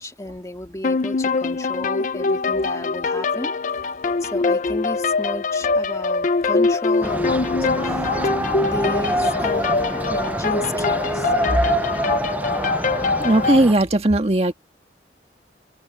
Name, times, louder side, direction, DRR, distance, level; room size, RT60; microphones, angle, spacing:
voice 1, 0.0-3.5 4.2-8.1 8.6-11.7, left 1 dB, 20° left, 2.2 m, -32 dB
sound 1, 0.8-13.6, left 4 dB, 45° left, 0.5 m, -23 dB
sound 2, 7.0-13.7, right 1 dB, 10° right, 0.6 m, -26 dB
voice 2, 13.2-14.5, right 1 dB, 35° right, 1.6 m, -17 dB
head